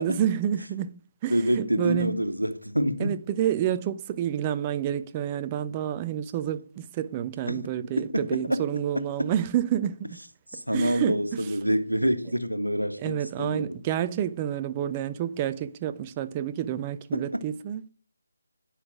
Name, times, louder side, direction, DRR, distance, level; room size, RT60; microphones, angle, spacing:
voice 1, 0.0-2.2 3.0-10.2 10.5-11.5 13.0-17.9, right 10 dB, 20° right, 0.5 m, -29 dB
voice 2, 1.3-3.2 7.5-7.6 8.1-8.6 8.9-9.3 10.5-13.8 17.1-17.4, equal, 85° right, 1.4 m, -27 dB
9.8 x 5.6 x 7.1 m
figure-of-eight pair, 155°, 0 cm